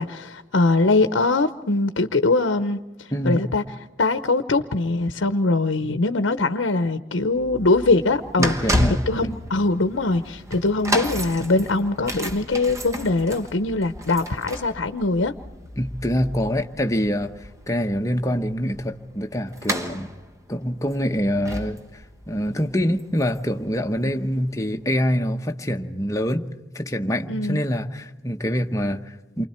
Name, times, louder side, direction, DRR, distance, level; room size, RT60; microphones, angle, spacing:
voice 1, 0.0-3.6 4.0-8.5 9.1-15.3 24.0-24.2 27.3-27.6, left 3 dB, 80° left, 0.9 m, -22 dB
sound 1, 7.3-24.3 25.0-25.1, equal, 15° right, 1.0 m, -32 dB
voice 2, 8.4-9.4 15.8-17.3 17.7-20.1 20.5-26.4 26.7-29.5, equal, 15° left, 1.0 m, -25 dB
29.0 x 24.5 x 4.4 m
head